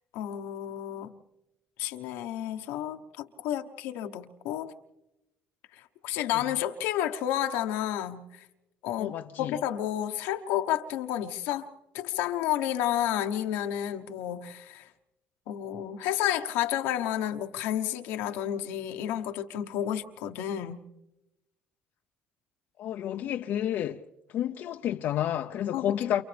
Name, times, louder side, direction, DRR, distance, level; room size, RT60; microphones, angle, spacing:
voice 1, 0.1-1.2 1.8-4.7 5.7-8.4 8.8-11.7 11.9-14.9 15.5-20.8 25.7-26.2, left 11 dB, 85° left, 1.2 m, -31 dB
voice 2, 9.0-9.6 22.8-24.0 24.3-26.2, left 11 dB, 65° left, 0.7 m, -30 dB
29.5 x 28.0 x 3.4 m
cardioid pair, 90°, 4 cm